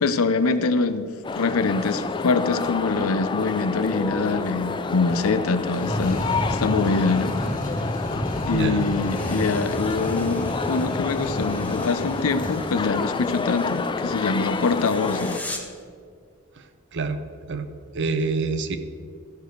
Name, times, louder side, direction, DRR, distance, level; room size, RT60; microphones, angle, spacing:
voice 1, 0.0-1.1 1.3-7.3 8.5-15.4, left 4 dB, 85° left, 11 dB, 0.6 m, -24 dB
sound 1, 1.2-15.4, left 4 dB, 20° left, 0.3 m, -29 dB
sound 2, 5.7-13.1, equal, 40° left, 1.7 m, -31 dB
voice 2, 8.5-8.9 16.9-17.2 17.5-17.7 17.9-18.8, right 4 dB, 60° right, 10 dB, 0.7 m, -26 dB
sound 3, 9.0-15.8, left 2 dB, 5° left, 1.0 m, -42 dB
13.5 x 4.7 x 6.5 m, 2.2 s
head